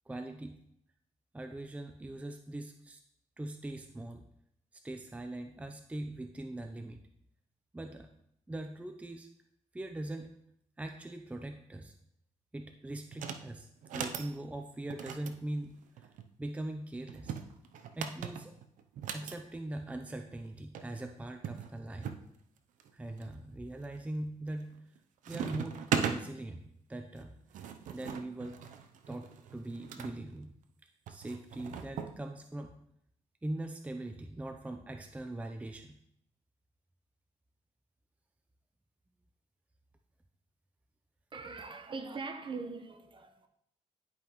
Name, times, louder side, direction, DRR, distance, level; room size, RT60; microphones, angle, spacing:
voice 1, 0.1-0.6 1.3-3.0 3.4-4.2 4.7-7.0 7.7-8.1 8.5-9.3 9.7-10.3 10.8-11.9 12.5-15.8 16.4-17.3 18.0-18.5 19.1-22.1 22.9-24.7 25.3-27.7 27.9-28.6 29.1-30.6 31.1-32.7 33.4-36.0, right 1 dB, 10° right, 0.5 m, -41 dB
sound 1, 13.1-13.5 13.8-14.3 14.9-16.3 17.1-19.4 20.5-20.6 20.7-20.9 21.4-22.2 22.8-23.3 23.8-24.2 24.5-25.0 25.2-26.2 27.2-30.1 31.1-32.1, right 7 dB, 85° right, 0.6 m, -38 dB
voice 2, 41.3-43.5, right 4 dB, 40° right, 0.9 m, -41 dB
10.5 x 5.2 x 3.0 m
cardioid pair, 90°, 13 cm